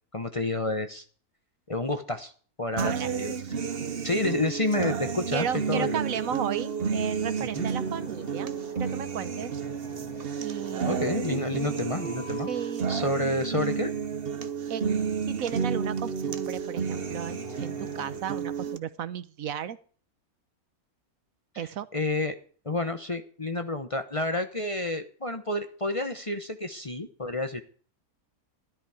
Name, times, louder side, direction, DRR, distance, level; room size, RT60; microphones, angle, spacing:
voice 1, 0.1-1.0 1.7-2.3 2.6-3.3 4.0-6.0 7.5-7.7 10.8-12.5 12.9-13.9 21.5-22.4 22.6-27.6, left 2 dB, 25° left, 8 dB, 0.9 m, -29 dB
sound 1, 2.8-18.8, right 6 dB, 45° right, 1.0 m, -31 dB
voice 2, 2.8-3.2 3.8-4.0 5.3-9.5 10.4-11.1 12.5-13.0 14.7-14.8 15.3-19.8 21.6-21.9, right 8 dB, 70° right, 14 dB, 1.2 m, -34 dB
sound 2, 7.2-18.2, left 5 dB, 85° left, 1.9 m, -48 dB
13.5 x 12.5 x 4.9 m, 0.42 s
omnidirectional pair, 1.5 m